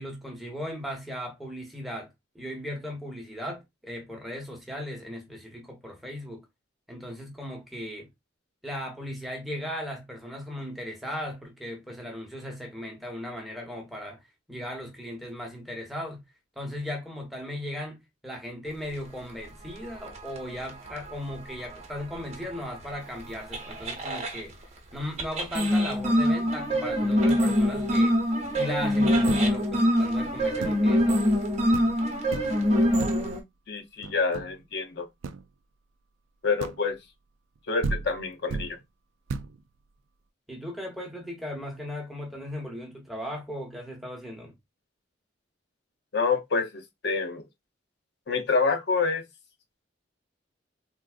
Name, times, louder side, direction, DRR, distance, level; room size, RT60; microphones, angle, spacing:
voice 1, 0.0-2.1 2.3-6.4 6.9-8.1 8.6-14.2 14.5-16.2 16.6-24.5 24.9-28.2 28.6-31.3 40.5-44.5, left 1 dB, ahead, 0.8 m, -37 dB
sound 1, 19.9-24.4 25.2-33.4, equal, 35° right, 0.7 m, -24 dB
sound 2, 29.2-29.7 30.6-30.9 31.4-31.5 31.7-32.0 32.3-32.7 33.0-33.4 34.0-34.6 35.2-35.5 36.6-37.0 37.6-37.7 37.8-38.8 39.3-39.6, right 4 dB, 85° right, 0.4 m, -35 dB
voice 2, 33.7-35.1 36.4-37.0 37.7-38.8 46.1-47.4 48.3-49.2, left 4 dB, 60° left, 0.6 m, -27 dB
3.5 x 2.5 x 2.4 m
head